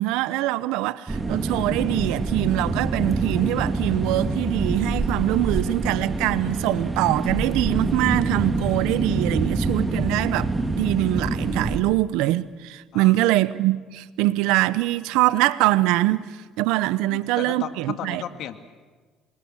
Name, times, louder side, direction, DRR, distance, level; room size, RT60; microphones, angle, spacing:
voice 1, 0.0-16.2 16.6-18.2, right 17 dB, 80° right, 0.9 m, -23 dB
sound 1, 1.1-11.8, right 3 dB, 20° right, 3.0 m, -26 dB
voice 2, 17.1-18.6, left 10 dB, 65° left, 2.1 m, -34 dB
27.5 x 23.5 x 7.4 m
supercardioid pair, 85°, 0 cm